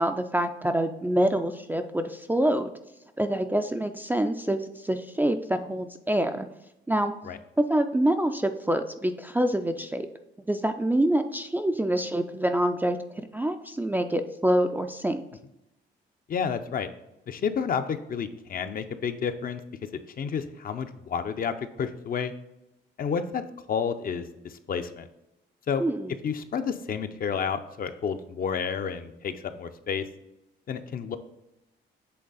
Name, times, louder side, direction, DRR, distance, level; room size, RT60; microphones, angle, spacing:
voice 1, 0.0-2.7 3.2-6.5 6.9-7.1 7.6-10.1 10.5-13.0 13.3-15.2 25.8-26.1, right 1 dB, 10° right, 6 dB, 0.3 m, -26 dB
voice 2, 16.3-16.9 17.3-19.6 20.2-22.3 23.0-23.4 23.7-25.1 25.7-25.8 26.2-30.0 30.7-31.2, left 6 dB, 45° left, 9 dB, 0.5 m, -30 dB
7.8 x 3.3 x 4.0 m, 0.90 s
cardioid pair, 90°, 20 cm